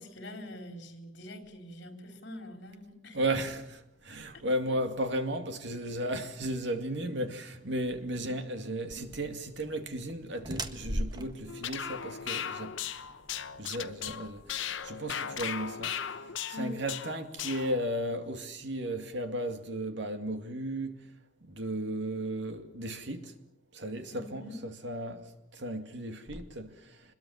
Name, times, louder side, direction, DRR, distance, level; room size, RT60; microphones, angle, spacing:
voice 1, 0.0-3.2 16.5-16.8 24.1-24.5, left 1 dB, 60° left, 4.2 m, -44 dB
voice 2, 3.1-12.8 13.6-15.9 16.5-21.0 21.5-23.3 23.7-25.2 25.5-26.7, right 1 dB, 65° right, 2.3 m, -35 dB
sound 1, 8.9-15.0, right 1 dB, 20° right, 1.5 m, -40 dB
sound 2, 11.5-17.9, left 8 dB, 80° left, 1.0 m, -37 dB
25.5 x 21.5 x 7.2 m
head